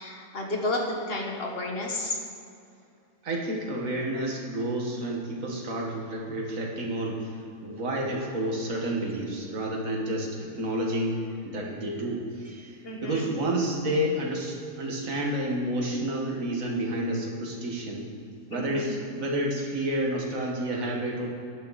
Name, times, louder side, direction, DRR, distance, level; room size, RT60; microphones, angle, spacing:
voice 1, 0.0-2.2 12.8-13.3 18.5-19.0, left 2 dB, 40° left, 0 dB, 1.7 m, -31 dB
voice 2, 3.2-18.1 18.5-21.3, right 1 dB, 60° right, -1 dB, 2.1 m, -30 dB
15.0 x 9.9 x 4.2 m, 2.5 s
omnidirectional pair, 1.6 m